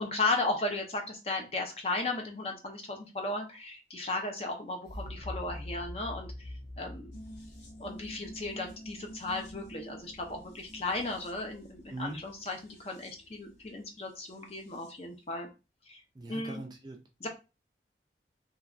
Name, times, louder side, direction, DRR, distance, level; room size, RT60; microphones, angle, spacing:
voice 1, 0.0-7.1 7.8-15.5 15.9-16.0 16.3-16.6 17.2-17.3, left 2 dB, 35° left, 3 dB, 0.5 m, -35 dB
sound 1, 4.8-9.7, left 1 dB, 55° left, 1.1 m, -44 dB
sound 2, 7.1-15.0 15.3-15.4, equal, 75° left, 0.8 m, -50 dB
voice 2, 16.1-17.3, right 2 dB, 25° right, 3 dB, 0.3 m, -41 dB
3.1 x 2.3 x 2.4 m, 0.29 s
head